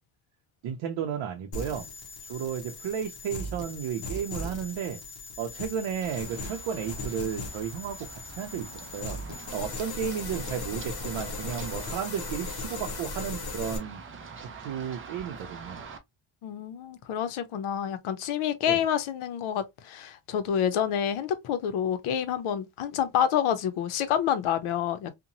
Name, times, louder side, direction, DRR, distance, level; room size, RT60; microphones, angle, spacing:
voice 1, 0.6-1.9 2.2-5.0 5.4-9.2 9.5-14.0 14.4-15.8 18.7-18.8, right 8 dB, 75° right, 0.6 m, -33 dB
sound 1, 1.5-13.8, left 3 dB, 50° left, 0.8 m, -38 dB
Run, 6.0-16.0, right 5 dB, 30° right, 0.3 m, -45 dB
voice 2, 16.4-25.1, left 9 dB, 80° left, 0.7 m, -28 dB
2.8 x 2.2 x 2.5 m
cardioid pair, 165°, 49 cm